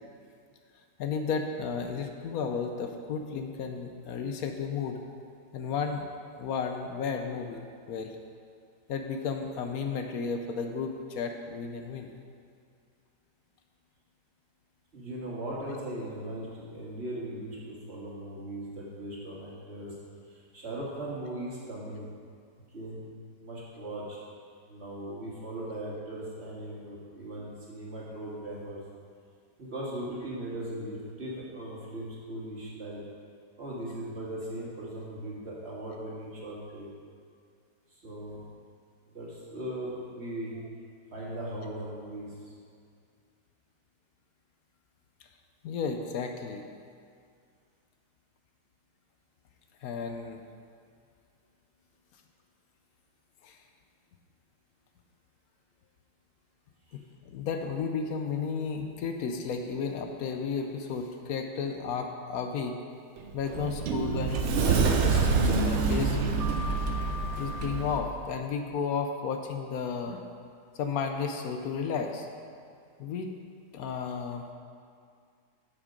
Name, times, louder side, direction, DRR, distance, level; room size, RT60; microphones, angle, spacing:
voice 1, 1.0-5.0 5.5-6.0 6.4-8.2 8.9-12.1 45.6-46.6 49.8-50.4 53.4-53.6 56.9-62.8 63.3-66.2 67.4-70.2 70.7-72.3 73.0-73.3 73.7-74.4, left 5 dB, 70° left, 5 dB, 1.0 m, -33 dB
voice 2, 14.9-20.0 20.3-22.1 22.7-23.0 23.4-24.2 24.7-28.8 29.6-33.0 33.6-36.9 37.9-38.4 39.1-40.5 41.1-42.3 56.9-57.0, right 1 dB, 40° right, -6 dB, 1.8 m, -38 dB
Sliding door, 63.2-68.0, right 4 dB, 65° right, 0.7 m, -26 dB
7.9 x 6.0 x 5.1 m, 2.2 s
omnidirectional pair, 1.8 m